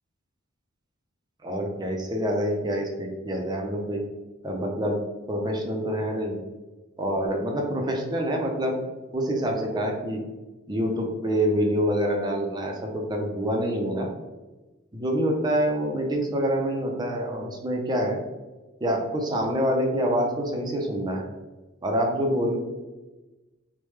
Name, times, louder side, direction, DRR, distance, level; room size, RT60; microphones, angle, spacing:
voice 1, 1.4-4.0 4.4-5.0 5.3-6.4 7.0-8.7 9.1-10.2 10.7-14.1 14.9-18.2 18.8-21.3 21.8-22.6, equal, 20° right, 1 dB, 0.5 m, -26 dB
3.2 x 2.1 x 3.1 m, 1.1 s
head